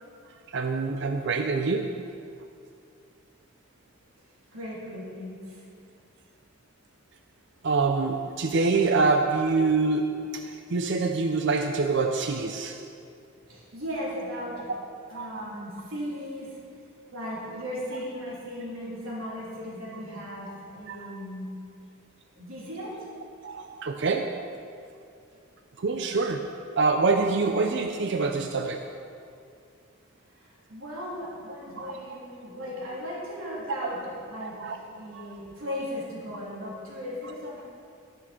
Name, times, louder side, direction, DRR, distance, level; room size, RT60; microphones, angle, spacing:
voice 1, 0.5-2.1 7.6-12.8 14.7-14.8 15.1-15.4 20.9-21.1 23.4-24.5 25.8-28.9 31.8-31.9 34.4-34.8 35.1-35.2, right 4 dB, 60° right, 6 dB, 0.5 m, -26 dB
voice 2, 4.5-5.6 13.5-14.7 15.1-16.6 17.1-21.5 22.3-23.1 30.4-37.6, equal, 85° right, -6 dB, 3.4 m, -37 dB
13.0 x 10.5 x 4.4 m, 2.4 s
head